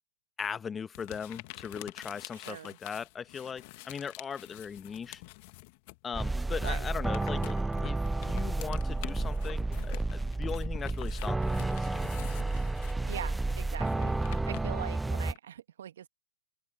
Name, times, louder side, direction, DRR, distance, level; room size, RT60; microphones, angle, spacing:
voice 1, 0.4-5.2 6.0-12.1, left 6 dB, 15° left, 1.2 m, -39 dB
sound 1, 0.9-6.0 6.3-15.4, left 26 dB, 40° left, 1.8 m, -48 dB
voice 2, 2.4-2.8 6.6-6.9 13.0-16.1, right 10 dB, 60° right, 1.7 m, -42 dB
sound 2, 6.1-15.3, right 2 dB, 5° right, 0.3 m, -31 dB
open air
figure-of-eight pair, 115°, 0 cm